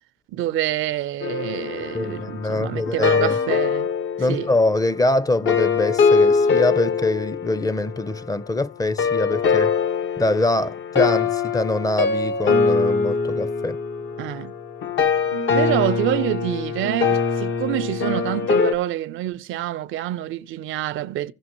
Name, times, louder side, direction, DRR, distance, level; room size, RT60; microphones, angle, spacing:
voice 1, 0.3-3.9 4.3-4.5 14.2-14.6 15.5-21.3, right 14 dB, 85° right, 0.5 m, -27 dB
sound 1, 1.2-8.4 9.0-18.7, left 5 dB, 75° left, 1.2 m, -23 dB
voice 2, 1.9-3.4 4.2-9.8 10.2-13.8, left 2 dB, 20° left, 0.5 m, -23 dB
16.0 x 5.9 x 2.9 m
cardioid pair, 90°, 20 cm